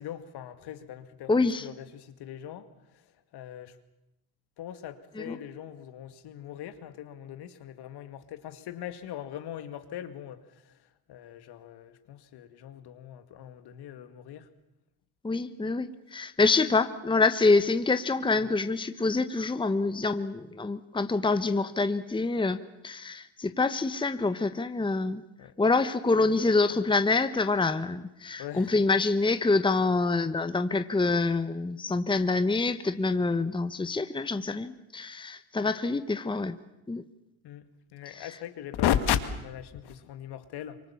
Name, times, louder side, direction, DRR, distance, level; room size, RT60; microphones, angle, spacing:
voice 1, 0.0-1.3 1.6-2.7 3.3-3.8 4.6-10.4 11.1-14.5 18.4-18.5 25.4-25.5 28.4-28.7 37.4-37.6 37.9-40.8, left 10 dB, 60° left, 11 dB, 2.2 m, -36 dB
voice 2, 1.3-1.7 5.1-5.4 15.2-25.2 25.6-36.6 36.9-37.0 38.1-38.3, left 3 dB, 10° left, 11 dB, 1.2 m, -26 dB
25.5 x 23.5 x 7.2 m, 0.89 s
supercardioid pair, 80°, 44 cm